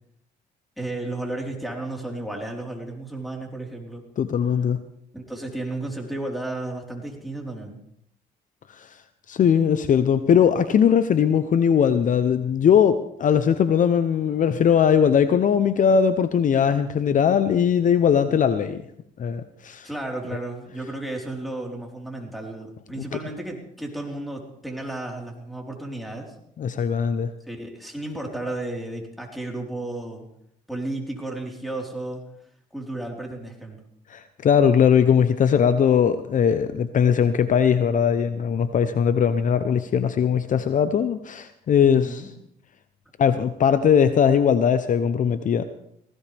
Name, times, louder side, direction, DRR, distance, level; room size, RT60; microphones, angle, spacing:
voice 1, 0.8-4.0 5.1-7.8 19.8-26.3 27.5-30.3 30.7-32.2 32.7-33.8 41.9-42.3, right 2 dB, ahead, 0 dB, 4.3 m, -33 dB
voice 2, 4.2-4.8 8.7-9.0 9.3-18.8 19.2-19.9 23.0-23.1 26.6-27.3 34.1-42.3 43.2-45.6, left 7 dB, 50° left, 11 dB, 0.8 m, -20 dB
19.0 x 16.5 x 3.5 m, 0.75 s
supercardioid pair, 80°, 18 cm